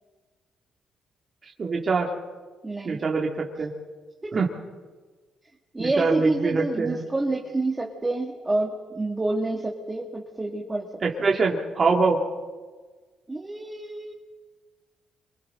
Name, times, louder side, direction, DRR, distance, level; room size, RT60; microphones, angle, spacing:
voice 1, 1.4-2.1 2.8-3.7 4.3-4.5 5.8-7.0 11.0-12.2, right 4 dB, 40° right, -1 dB, 2.4 m, -24 dB
voice 2, 2.6-3.0 4.2-4.3 5.7-10.9 11.2-11.4 13.3-14.1, right 2 dB, 15° right, -1 dB, 2.3 m, -28 dB
28.0 x 25.0 x 3.9 m, 1.4 s
cardioid pair, 90°, 0 cm